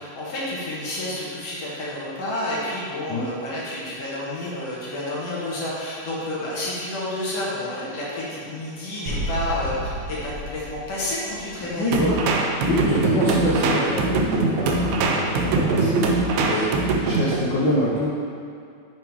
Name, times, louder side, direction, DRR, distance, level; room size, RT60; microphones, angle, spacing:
voice 1, 0.0-12.0 12.9-13.0 16.4-16.6, left 1 dB, 65° left, -7 dB, 2.1 m, -30 dB
sound 1, 9.1-12.0, right 1 dB, 70° right, 1.2 m, -31 dB
voice 2, 11.7-12.2 12.6-16.7 17.0-18.1, left 1 dB, 80° left, -8 dB, 1.0 m, -25 dB
sound 2, 11.9-17.4, right 3 dB, 90° right, 2.1 m, -22 dB
7.2 x 3.6 x 4.5 m, 2.4 s
omnidirectional pair, 3.3 m